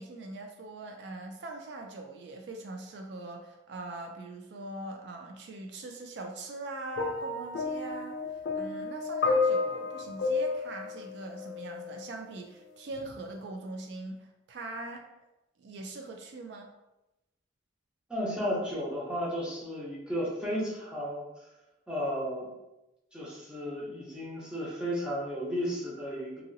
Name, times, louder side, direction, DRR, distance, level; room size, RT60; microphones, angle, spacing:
voice 1, 0.0-8.2 8.6-15.0 15.6-16.7, right 2 dB, 65° right, 4 dB, 0.3 m, -41 dB
sound 1, 7.0-12.1 13.0-13.1, left 4 dB, 60° left, 0.3 m, -31 dB
voice 2, 18.1-21.2 21.9-22.5 23.1-26.4, equal, 5° right, -7 dB, 0.7 m, -33 dB
2.9 x 2.6 x 2.6 m, 0.95 s
head